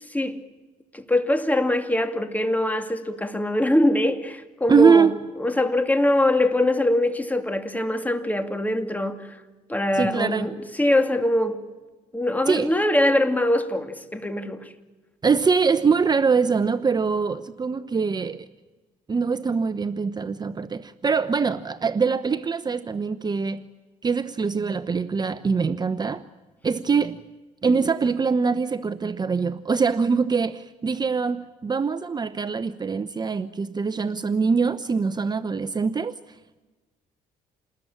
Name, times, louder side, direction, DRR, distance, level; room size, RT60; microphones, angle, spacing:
voice 1, 0.9-5.1 5.4-9.3 9.7-11.6 12.1-14.7, left 1 dB, 10° left, 2.5 m, -23 dB
voice 2, 4.7-5.1 9.9-10.5 12.5-12.7 15.2-18.5 19.1-23.6 24.0-26.2 26.6-27.2 27.6-36.2, right 5 dB, 30° right, 0.9 m, -23 dB
28.5 x 20.5 x 8.9 m
cardioid pair, 95°, 15 cm